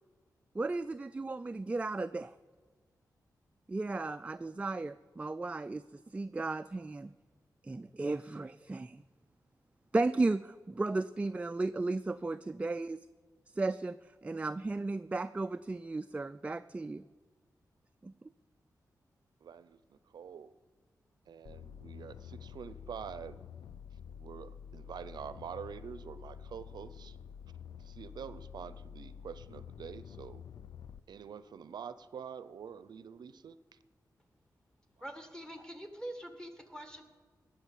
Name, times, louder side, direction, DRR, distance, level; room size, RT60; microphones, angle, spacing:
voice 1, 0.5-2.3 3.7-7.1 7.6-9.0 9.9-13.1 13.5-17.0 18.0-18.1, right 3 dB, 20° right, 11 dB, 0.3 m, -35 dB
voice 2, 19.4-20.5 21.3-23.4 24.2-27.2 27.8-30.4 31.1-33.6, right 7 dB, 85° right, 15 dB, 0.5 m, -46 dB
sound 1, 21.5-31.0, left 8 dB, 85° left, 0.4 m, -49 dB
voice 3, 35.0-37.0, right 1 dB, 10° left, 7 dB, 1.8 m, -44 dB
18.5 x 6.9 x 7.4 m, 1.5 s
wide cardioid pair, 95°, 7 cm